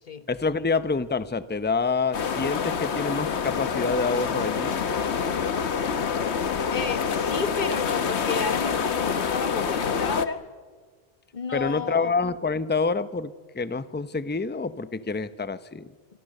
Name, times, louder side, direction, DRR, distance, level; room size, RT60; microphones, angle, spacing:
voice 1, 0.3-4.8 11.5-15.9, left 4 dB, 10° left, 14 dB, 0.6 m, -27 dB
sound 1, 2.1-10.2, left 6 dB, 80° left, 1.4 m, -27 dB
voice 2, 6.7-10.4 11.3-12.1, left 5 dB, 45° left, 11 dB, 1.4 m, -31 dB
26.5 x 25.5 x 6.6 m, 1.5 s
omnidirectional pair, 1.1 m